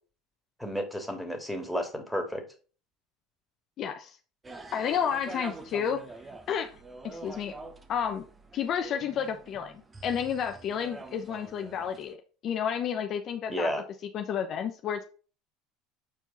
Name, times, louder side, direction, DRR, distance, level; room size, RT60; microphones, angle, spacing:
voice 1, 0.6-2.4 13.5-13.8, equal, ahead, 2 dB, 2.3 m, -32 dB
voice 2, 3.8-4.2 4.7-6.0 6.5-6.7 7.0-7.5 7.9-8.3 8.5-12.2 12.4-13.7 14.1-15.0, left 8 dB, 50° left, 6 dB, 0.8 m, -31 dB
sound 1, 4.4-12.1, right 3 dB, 20° right, 1.2 m, -46 dB
7.4 x 4.5 x 4.0 m, 0.37 s
hypercardioid pair, 75°, 0 cm